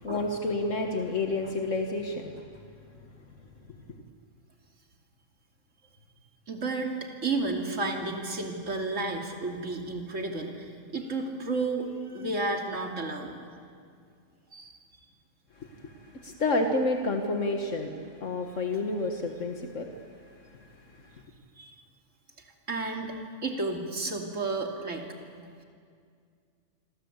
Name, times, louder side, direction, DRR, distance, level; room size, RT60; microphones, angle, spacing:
voice 1, 0.0-2.3 15.8-17.9 18.2-19.9, left 2 dB, 70° left, 4 dB, 1.9 m, -29 dB
voice 2, 6.5-6.9 7.2-13.3 14.5-14.7 21.6-21.7 22.7-23.1 23.4-25.1, right 3 dB, 75° right, 2 dB, 3.1 m, -32 dB
26.5 x 26.0 x 8.2 m, 2.2 s
omnidirectional pair, 1.3 m